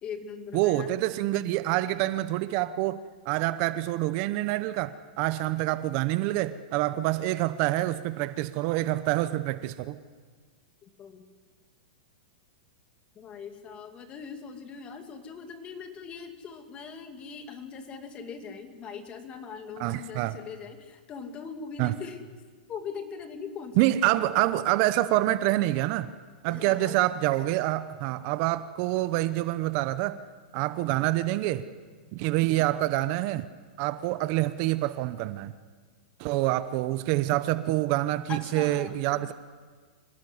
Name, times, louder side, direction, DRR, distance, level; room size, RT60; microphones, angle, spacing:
voice 1, 0.0-1.0 10.8-11.3 13.2-22.2 22.7-24.2 26.5-27.0 38.3-39.3, left 6 dB, 25° left, 6 dB, 2.5 m, -41 dB
voice 2, 0.5-10.0 19.8-20.4 21.8-21.9 23.8-26.1 26.4-30.2 30.5-31.6 32.1-33.4 33.8-35.5 36.2-39.3, right 16 dB, 45° right, 13 dB, 0.8 m, -26 dB
26.0 x 17.5 x 8.0 m, 1.5 s
hypercardioid pair, 145°, 4 cm